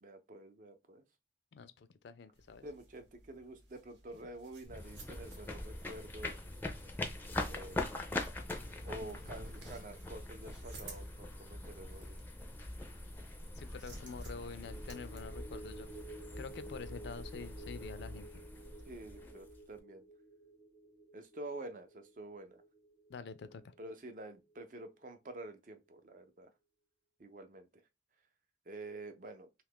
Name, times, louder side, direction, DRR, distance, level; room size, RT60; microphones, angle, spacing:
voice 1, 0.0-1.0 2.6-6.4 7.5-7.9 8.8-12.2 18.9-20.1 21.1-22.6 23.8-26.5 27.2-27.7 28.7-29.5, right 2 dB, 45° right, 0.4 m, -48 dB
voice 2, 1.5-2.7 13.6-15.9 16.4-18.3 23.1-23.7, left 5 dB, 75° left, 0.4 m, -47 dB
sound 1, 2.3-15.2, right 2 dB, 85° right, 1.0 m, -56 dB
sound 2, 4.6-19.8, left 2 dB, 10° left, 0.4 m, -43 dB
sound 3, 14.5-25.1 25.5-25.6, right 2 dB, 25° right, 0.8 m, -53 dB
2.8 x 2.4 x 3.5 m
head